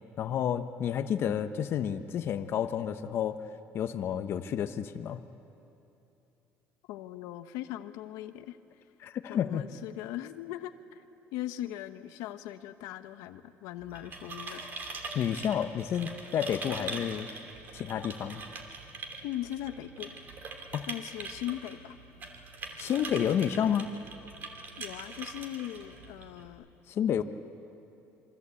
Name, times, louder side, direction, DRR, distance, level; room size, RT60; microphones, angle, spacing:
voice 1, 0.2-3.4 3.7-5.2 9.0-9.7 15.1-17.3 17.7-18.4 20.7-20.9 22.8-23.9 26.9-27.2, left 9 dB, 45° left, 9 dB, 0.9 m, -30 dB
voice 2, 6.9-8.6 9.3-11.0 11.3-14.6 14.9-15.0 19.2-20.1 20.9-22.0 24.8-26.7, left 13 dB, 85° left, 9 dB, 1.1 m, -39 dB
sound 1, 13.8-26.5, right 3 dB, 35° right, 2.9 m, -43 dB
27.5 x 24.0 x 8.5 m, 2.8 s
cardioid pair, 145°, 6 cm